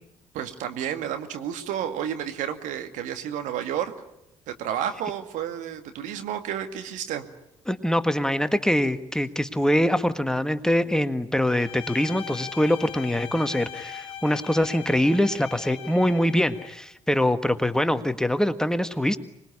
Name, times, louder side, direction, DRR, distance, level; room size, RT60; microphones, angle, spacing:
voice 1, 0.3-3.9 4.5-7.3, right 9 dB, 65° right, 8 dB, 2.1 m, -31 dB
voice 2, 7.7-19.2, left 1 dB, 5° left, 10 dB, 1.7 m, -23 dB
Bowed string instrument, 11.5-16.8, left 9 dB, 40° left, 2.8 m, -40 dB
26.0 x 21.0 x 10.0 m, 0.82 s
figure-of-eight pair, 50°, 14 cm